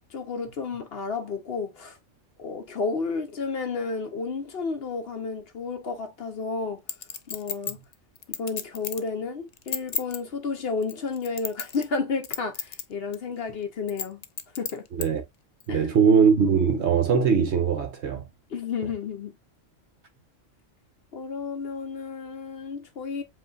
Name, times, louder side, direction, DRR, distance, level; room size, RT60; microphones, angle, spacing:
voice 1, 0.1-2.0 2.4-6.8 7.3-7.8 8.3-14.2 14.6-14.8 15.7-15.9 18.5-19.4 21.1-23.2, left 4 dB, 55° left, 0.9 m, -31 dB
Chink clink, 6.9-9.1 9.5-10.2 10.8-12.0 12.2-12.8 13.1-13.2 13.9-15.1 15.6-15.7, left 7 dB, 85° left, 0.3 m, -32 dB
voice 2, 15.7-18.3, right 6 dB, 60° right, 1.0 m, -21 dB
7.7 x 2.6 x 2.3 m
omnidirectional pair, 1.3 m